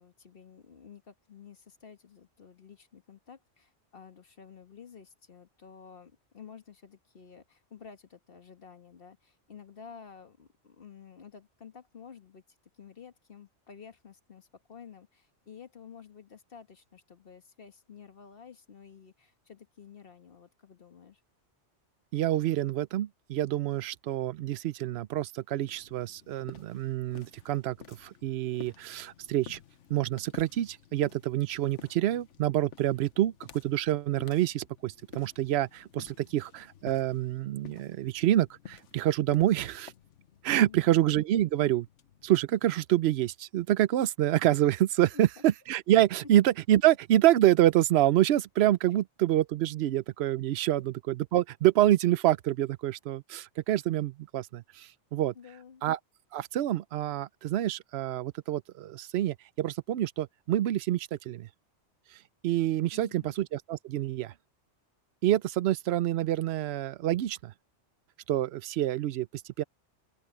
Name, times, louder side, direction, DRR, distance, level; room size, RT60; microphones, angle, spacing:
voice 1, 0.0-21.2 40.6-41.0 45.1-45.4 50.7-50.8 55.3-55.8 62.9-63.3, left 6 dB, 55° left, 1.6 m, -51 dB
voice 2, 22.1-29.6 29.9-39.9 40.4-41.9 42.2-55.3 55.8-56.0 56.3-61.5 62.4-64.3 65.2-67.5 68.3-69.6, right 13 dB, 70° right, 0.8 m, -27 dB
sound 1, 25.6-43.1, left 8 dB, 90° left, 1.2 m, -53 dB
open air
omnidirectional pair, 1.2 m